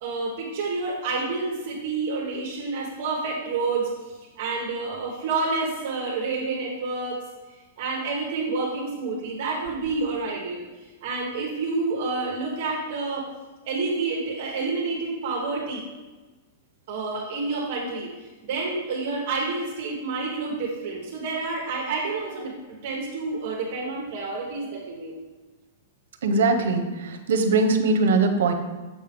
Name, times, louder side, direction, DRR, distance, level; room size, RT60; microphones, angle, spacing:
voice 1, 0.0-7.2 7.8-13.3 13.6-15.8 16.9-18.1 18.4-22.5 22.8-25.1, right 3 dB, 45° right, -2 dB, 1.1 m, -29 dB
voice 2, 26.2-26.8 27.3-28.5, right 3 dB, 75° right, 6 dB, 0.8 m, -20 dB
7.3 x 5.4 x 3.5 m, 1.2 s
supercardioid pair, 175°, 0 cm